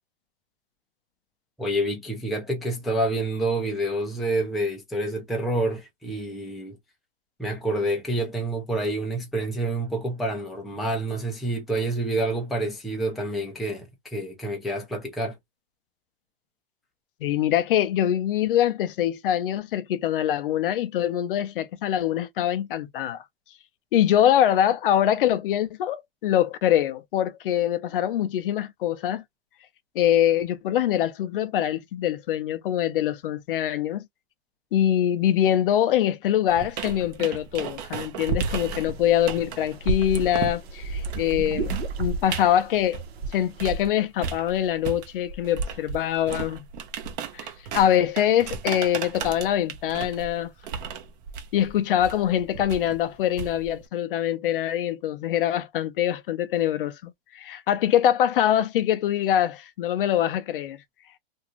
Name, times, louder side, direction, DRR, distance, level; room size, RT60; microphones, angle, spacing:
voice 1, 1.6-6.8 7.4-15.4, right 1 dB, ahead, 0.4 m, -28 dB
voice 2, 17.2-23.2 23.9-29.2 30.0-34.0 34.7-41.7 42.0-43.0 43.3-46.7 47.3-47.5 47.7-50.5 51.5-60.8, left 11 dB, 60° left, 0.5 m, -24 dB
sound 1, 36.5-43.9 44.2-53.8, right 5 dB, 40° right, 0.7 m, -33 dB
sound 2, 38.4-43.8, right 7 dB, 75° right, 1.0 m, -40 dB
2.6 x 2.3 x 2.9 m
hypercardioid pair, 135°, 31 cm